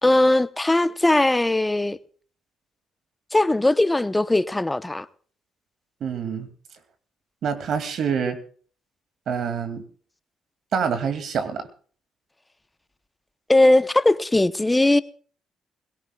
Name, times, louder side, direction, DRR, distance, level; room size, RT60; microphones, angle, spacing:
voice 1, 0.0-2.0 3.3-5.1 13.5-15.0, left 2 dB, 15° left, 0.8 m, -19 dB
voice 2, 6.0-6.5 7.4-8.4 9.3-9.8 10.7-11.7, right 6 dB, 65° right, 2.4 m, -26 dB
21.5 x 17.5 x 2.3 m
cardioid pair, 90°, 0 cm